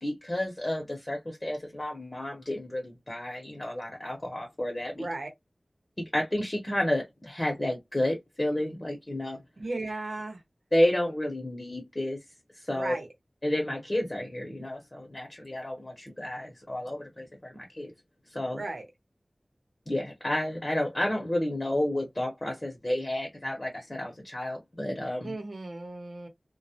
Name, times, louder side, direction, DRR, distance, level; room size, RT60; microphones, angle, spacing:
voice 1, 0.0-5.1 6.0-9.4 10.7-12.2 12.6-13.0 13.4-17.9 18.3-18.6 19.9-25.3, left 1 dB, 35° left, 0.8 m, -31 dB
voice 2, 5.0-5.3 9.6-10.4 12.7-13.1 18.5-18.9 25.2-26.3, right 2 dB, 85° right, 0.8 m, -35 dB
2.2 x 2.0 x 2.8 m
wide cardioid pair, 50°, 0 cm